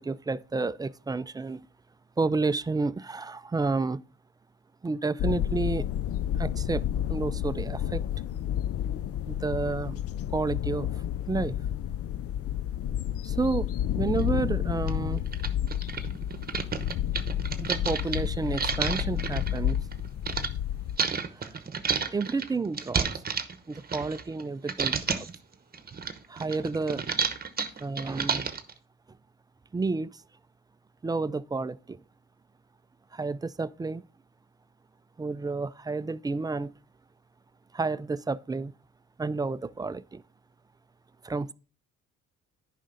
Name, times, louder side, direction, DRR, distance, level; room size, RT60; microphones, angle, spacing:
voice 1, 0.0-1.6 2.2-4.0 4.8-5.8 6.3-8.0 9.3-10.0 10.3-11.0 11.3-11.5 13.2-15.2 17.6-19.8 21.3-21.6 22.1-23.2 23.7-25.3 26.3-27.1 27.8-28.5 29.7-30.2 31.0-32.0 33.1-34.0 35.2-36.7 37.7-38.7 39.2-40.2 41.2-41.5, right 3 dB, 15° right, 0.3 m, -30 dB
sound 1, 5.2-21.0, left 10 dB, 50° left, 0.4 m, -30 dB
sound 2, 14.2-14.3 14.9-15.0 15.3-20.5 21.0-24.4 24.7-25.4 25.7-28.7, right 6 dB, 30° right, 1.0 m, -31 dB
10.5 x 5.2 x 3.9 m
cardioid pair, 90°, 30 cm